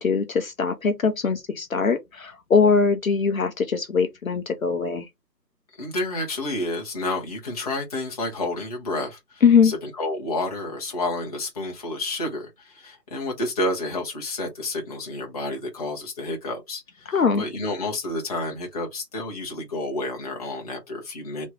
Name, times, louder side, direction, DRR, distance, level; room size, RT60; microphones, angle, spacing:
voice 1, 0.0-5.1 9.4-9.7 17.1-17.4, left 5 dB, 55° left, 0.7 m, -21 dB
voice 2, 5.8-21.5, left 2 dB, 25° left, 0.9 m, -30 dB
3.1 x 2.9 x 3.6 m
figure-of-eight pair, 145°, 50 cm